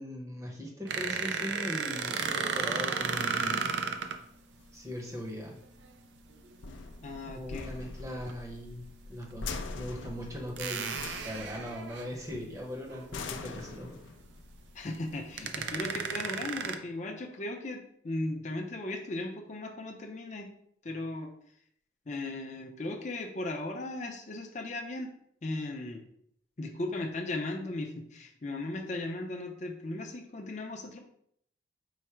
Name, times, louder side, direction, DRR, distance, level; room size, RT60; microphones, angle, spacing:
voice 1, 0.0-3.8 4.7-5.6 7.3-8.8 9.1-14.0, equal, 15° right, -1 dB, 0.8 m, -40 dB
sound 1, 0.9-4.2 6.3-6.5 8.2-8.3 9.2-9.3 10.6-12.4 12.9-13.0 13.4-13.5 14.9-15.0 15.4-16.8, right 6 dB, 70° right, 0.4 m, -33 dB
sound 2, 4.1-16.0, left 3 dB, 85° left, 0.4 m, -44 dB
voice 2, 7.0-7.7 14.7-20.5 20.8-21.3 22.1-25.1 25.4-26.0 26.6-31.0, left 2 dB, 40° left, 2 dB, 0.6 m, -37 dB
4.7 x 2.1 x 4.3 m, 0.68 s
head